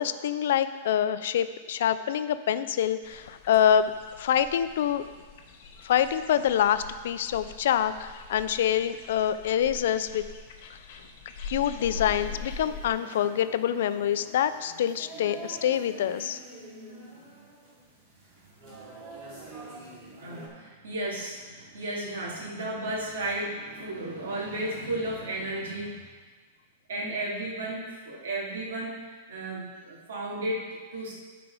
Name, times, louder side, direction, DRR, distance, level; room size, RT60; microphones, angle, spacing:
voice 1, 0.0-3.9 4.2-5.0 5.8-10.2 11.5-16.4, left 9 dB, 65° left, 12 dB, 0.5 m, -26 dB
sound 1, 3.0-12.9, left 4 dB, 45° left, 1.0 m, -43 dB
sound 2, 11.8-20.5, right 2 dB, 35° right, 2.4 m, -46 dB
voice 2, 20.0-26.1 26.9-31.1, right 1 dB, 85° right, -3 dB, 2.8 m, -34 dB
12.5 x 5.1 x 4.9 m, 1.4 s
supercardioid pair, 165°, 0 cm